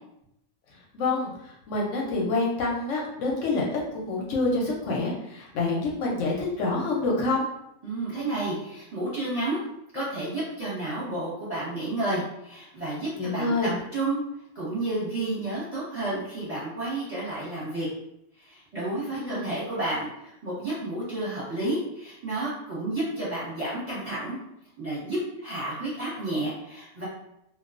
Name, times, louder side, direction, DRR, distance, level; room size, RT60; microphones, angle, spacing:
voice 1, 0.9-3.7 3.9-7.5 13.1-13.8 19.1-19.6, left 3 dB, 65° left, -2 dB, 0.8 m, -27 dB
voice 2, 7.8-9.6 9.9-14.2 14.5-17.9 18.4-24.4 24.8-27.0, right 2 dB, 30° right, -10 dB, 0.8 m, -31 dB
2.3 x 2.2 x 2.4 m, 0.80 s
omnidirectional pair, 1.6 m